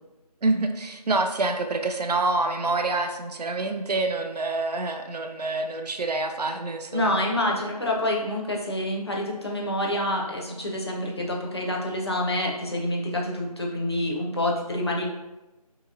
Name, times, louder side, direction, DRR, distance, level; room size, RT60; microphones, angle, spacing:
voice 1, 0.4-7.2, right 3 dB, 85° right, 5 dB, 0.5 m, -27 dB
voice 2, 6.9-15.1, left 1 dB, 40° left, -2 dB, 0.5 m, -27 dB
2.8 x 2.8 x 2.6 m, 1.0 s
figure-of-eight pair, 170°, 20 cm